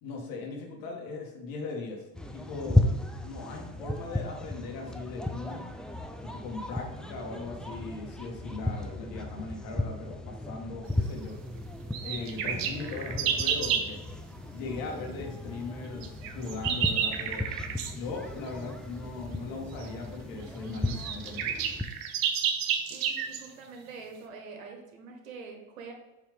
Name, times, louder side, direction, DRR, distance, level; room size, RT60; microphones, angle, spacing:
voice 1, 0.0-2.8 3.1-5.6 6.2-11.4 12.0-14.0 14.5-17.5 17.8-21.6, left 3 dB, 60° left, 1 dB, 1.9 m, -39 dB
sound 1, 2.1-21.8, left 1 dB, ahead, 0.5 m, -35 dB
sound 2, 11.9-13.9 16.0-18.0 19.8-19.9 20.5-20.6 20.7-23.5, right 8 dB, 60° right, 0.9 m, -30 dB
voice 2, 22.9-25.9, right 4 dB, 90° right, 2 dB, 1.5 m, -45 dB
7.4 x 3.2 x 5.2 m, 1.0 s
supercardioid pair, 95°, 39 cm